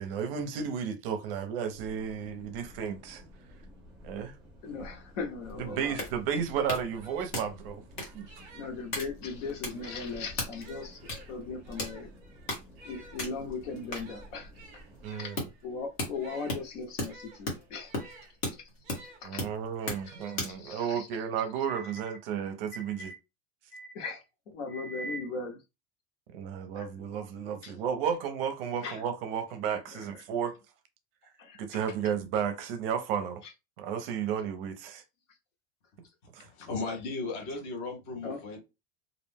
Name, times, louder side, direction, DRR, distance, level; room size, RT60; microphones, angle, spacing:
voice 1, 0.0-3.2 4.0-4.4 5.7-8.3 15.0-15.4 19.2-23.1 26.3-30.6 31.6-33.4 33.8-35.0 36.3-36.4, right 7 dB, 50° right, 0.5 m, -33 dB
sound 1, 1.7-15.1, left 1 dB, ahead, 0.9 m, -51 dB
voice 2, 4.6-6.0 8.5-12.1 12.8-14.8 15.1-15.3 15.6-17.9 18.5-18.6 19.2-19.4 20.1-21.1 21.6-22.0 22.7-23.2 23.7-25.6 26.8-26.9 27.6-27.7 28.8-29.0 29.9-30.2 31.4-31.6 31.9-32.0 36.6-36.7 38.2-38.4, left 4 dB, 80° left, 1.1 m, -39 dB
sound 2, 5.3-5.4 5.7-8.9 9.6-19.2 19.8-20.9, right 2 dB, 30° right, 0.9 m, -54 dB
sound 3, 5.5-20.7, left 1 dB, 40° left, 1.0 m, -38 dB
voice 3, 36.4-38.6, left 3 dB, 20° left, 0.4 m, -36 dB
2.5 x 2.0 x 3.3 m
supercardioid pair, 175°, 37 cm